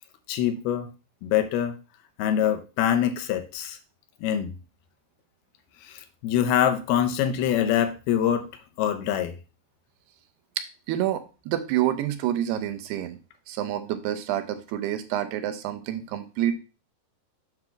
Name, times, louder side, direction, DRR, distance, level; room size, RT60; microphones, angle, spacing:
voice 1, 0.3-0.9 1.2-1.7 2.2-3.8 4.2-4.5 5.9-8.5 8.8-9.4, left 10 dB, 80° left, 2.7 m, -24 dB
voice 2, 10.6-13.2 13.5-16.6, right 12 dB, 90° right, 2.9 m, -28 dB
8.0 x 3.8 x 5.9 m
omnidirectional pair, 4.5 m